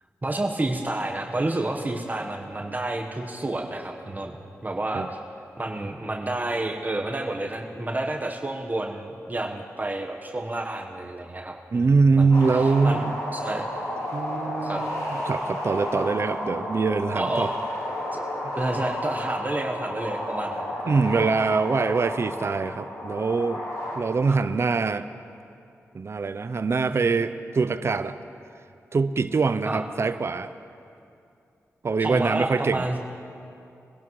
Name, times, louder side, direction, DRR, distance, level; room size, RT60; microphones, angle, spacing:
voice 1, 0.2-4.4 4.6-5.2 5.6-11.9 12.1-13.0 13.3-13.7 14.6-14.8 17.1-17.5 18.1-21.0 21.3-21.4 24.3-24.4 29.6-29.8 32.0-33.0, right 2 dB, 30° right, 1 dB, 1.1 m, -30 dB
voice 2, 11.7-13.2 14.1-17.5 20.9-23.6 23.9-25.1 25.9-28.2 28.9-30.5 31.8-32.8, right 4 dB, 50° right, 11 dB, 0.5 m, -23 dB
sound 1, 12.3-24.0, left 1 dB, 80° left, 2.9 m, -32 dB
23.5 x 11.5 x 3.1 m, 2.5 s
cardioid pair, 45°, 6 cm